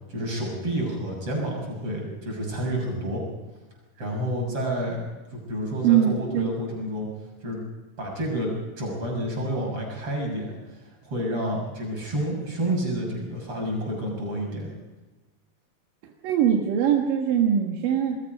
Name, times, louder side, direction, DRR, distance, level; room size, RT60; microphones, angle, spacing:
voice 1, 0.1-3.2 4.0-5.0 5.3-7.1 7.4-7.6 8.0-14.7, right 1 dB, 40° right, 0 dB, 7.3 m, -29 dB
voice 2, 5.8-6.5 16.2-18.2, right 9 dB, 75° right, 1 dB, 3.2 m, -22 dB
27.0 x 21.5 x 5.3 m, 1.2 s
omnidirectional pair, 3.9 m